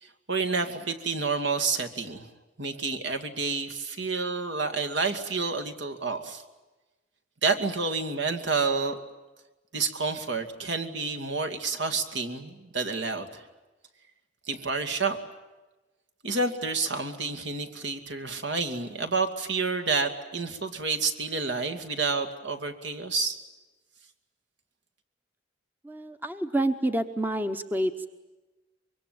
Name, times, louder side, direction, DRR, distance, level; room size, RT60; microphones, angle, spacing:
voice 1, 0.0-2.3 2.6-6.4 7.4-9.0 9.7-13.5 14.5-15.2 16.2-23.4, right 4 dB, 70° right, 7 dB, 2.3 m, -29 dB
voice 2, 25.8-28.1, right 1 dB, 10° right, 8 dB, 0.9 m, -28 dB
25.0 x 23.0 x 9.3 m, 1.1 s
head